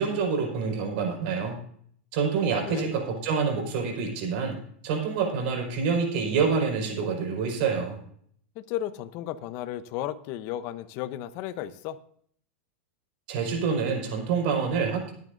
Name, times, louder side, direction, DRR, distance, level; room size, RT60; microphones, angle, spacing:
voice 1, 0.0-1.6 2.1-4.6 4.8-8.0 13.3-15.1, right 5 dB, 55° right, 2 dB, 5.0 m, -27 dB
voice 2, 8.6-12.0, left 12 dB, 40° left, 13 dB, 0.8 m, -34 dB
21.5 x 9.4 x 2.6 m, 0.62 s
supercardioid pair, 155°, 6 cm